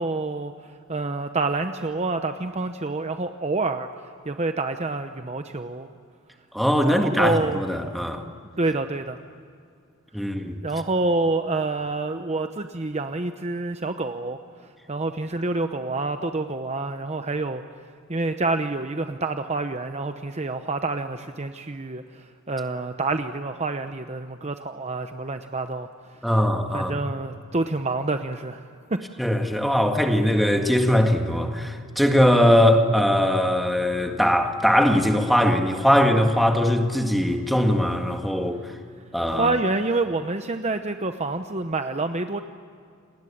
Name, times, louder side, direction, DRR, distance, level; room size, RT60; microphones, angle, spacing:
voice 1, 0.0-3.9 4.2-5.9 6.9-7.6 8.6-9.2 10.6-14.4 14.9-17.6 18.1-25.9 26.7-28.6 28.9-29.0 39.3-42.4, right 3 dB, 30° right, 7 dB, 0.9 m, -27 dB
voice 2, 6.5-8.2 10.1-10.6 26.2-26.9 29.2-38.6 39.1-39.5, equal, ahead, 4 dB, 1.9 m, -21 dB
29.0 x 20.0 x 8.7 m, 2.3 s
head